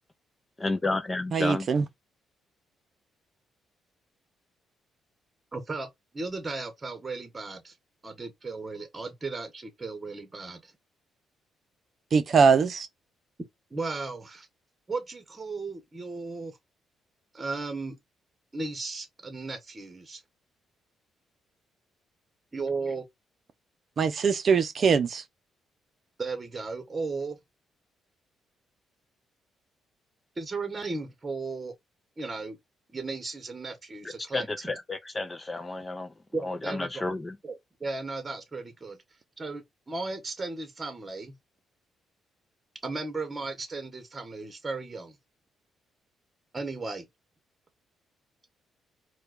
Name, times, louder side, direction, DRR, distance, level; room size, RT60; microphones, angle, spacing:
voice 1, 0.6-1.7 34.3-36.1 36.4-37.3, left 2 dB, 20° left, 0.4 m, -31 dB
voice 2, 1.3-1.8 12.1-12.9 24.0-25.2, right 5 dB, 50° right, 0.5 m, -22 dB
voice 3, 5.5-7.7 8.0-10.7 13.7-14.5 14.9-16.6 17.3-18.0 18.5-20.2 22.5-23.0 26.2-27.4 30.4-31.7 32.2-32.6 32.9-34.7 36.3-37.2 37.4-39.0 39.4-41.4 42.8-45.2 46.5-47.1, right 3 dB, 25° right, 1.1 m, -35 dB
4.4 x 2.2 x 2.4 m
cardioid pair, 90°, 0 cm